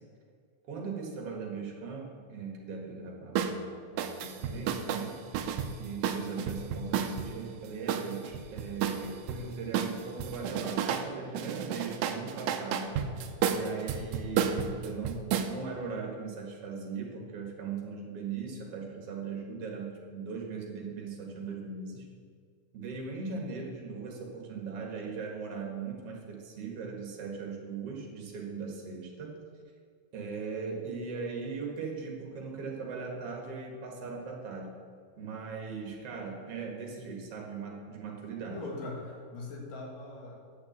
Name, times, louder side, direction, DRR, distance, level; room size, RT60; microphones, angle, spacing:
voice 1, 0.7-5.2 5.8-13.0 13.5-22.1 22.7-29.4 30.1-34.7 35.2-38.6, right 5 dB, 50° right, 0 dB, 2.3 m, -39 dB
sound 1, 3.4-3.6 4.0-7.3 7.9-9.4 9.7-11.1 11.3-15.5, right 8 dB, 85° right, 1.7 m, -31 dB
voice 2, 38.4-40.5, left 3 dB, 65° left, -2 dB, 3.5 m, -41 dB
9.9 x 5.9 x 7.9 m, 2.1 s
omnidirectional pair, 4.3 m